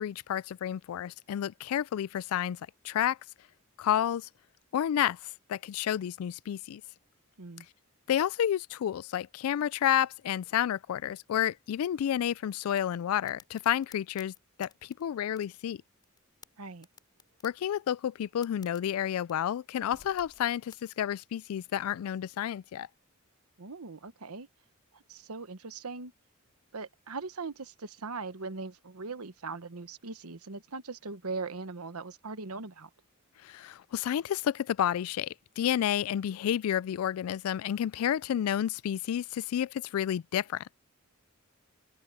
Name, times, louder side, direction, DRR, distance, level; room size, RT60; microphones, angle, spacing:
voice 1, 0.0-2.6 2.8-3.2 3.8-4.3 4.7-6.8 8.1-14.3 14.6-15.8 17.4-22.9 33.4-40.6, left 10 dB, 70° left, 0.3 m, -30 dB
sound 1, 12.8-20.8, left 5 dB, 20° left, 3.5 m, -60 dB
sound 2, 16.2-16.3 17.1-18.0 18.9-21.3 21.6-21.7 23.3-23.4, right 1 dB, 55° right, 7.3 m, -64 dB
voice 2, 23.6-24.5 24.9-26.1 26.7-32.9, right 4 dB, 90° right, 1.2 m, -40 dB
open air
head